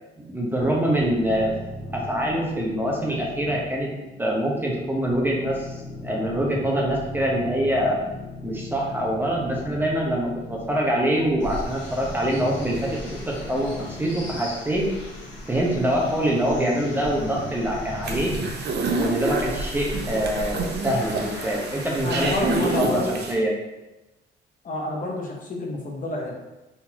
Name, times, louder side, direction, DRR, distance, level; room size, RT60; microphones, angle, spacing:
voice 1, 0.2-1.5 1.9-3.9 4.2-5.8 6.0-8.0 8.4-14.9 15.5-18.4 19.0-23.0 23.3-23.5, right 1 dB, 10° right, -3 dB, 1.0 m, -24 dB
sound 1, 0.6-18.5, left 2 dB, 25° left, 1.1 m, -38 dB
sound 2, 11.4-22.8, equal, 70° left, 1.4 m, -38 dB
sound 3, 18.0-23.3, right 3 dB, 60° right, 0.7 m, -29 dB
voice 2, 22.0-23.2 24.6-26.3, left 1 dB, 40° left, 0 dB, 0.9 m, -28 dB
4.0 x 4.0 x 2.9 m, 1.0 s
cardioid pair, 90°, 20 cm